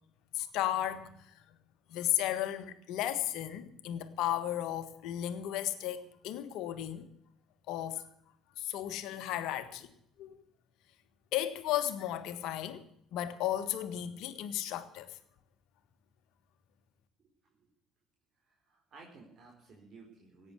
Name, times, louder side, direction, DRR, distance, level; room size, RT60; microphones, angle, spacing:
voice 1, 0.3-1.2 1.9-7.1 7.7-8.0 8.6-9.9 10.2-10.4 11.3-12.8 13.1-15.2, left 12 dB, 65° left, 1.6 m, -34 dB
voice 2, 18.7-20.5, right 3 dB, 45° right, 4.3 m, -55 dB
17.0 x 8.9 x 8.3 m
hypercardioid pair, 55°, 0 cm